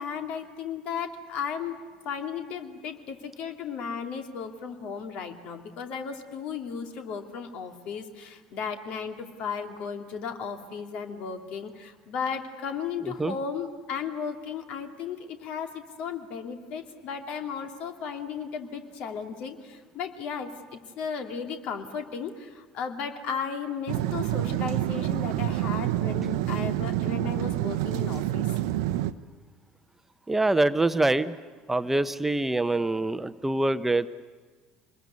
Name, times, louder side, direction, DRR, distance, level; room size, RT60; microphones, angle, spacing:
voice 1, 0.0-1.7 2.0-28.5, left 6 dB, 55° left, 4 dB, 2.6 m, -35 dB
sound 1, 23.9-29.1, right 14 dB, 70° right, 0.8 m, -27 dB
voice 2, 30.3-31.4 31.7-34.1, right 2 dB, 10° right, 11 dB, 0.9 m, -25 dB
26.5 x 21.0 x 9.6 m, 1.4 s
hypercardioid pair, 65°, 2 cm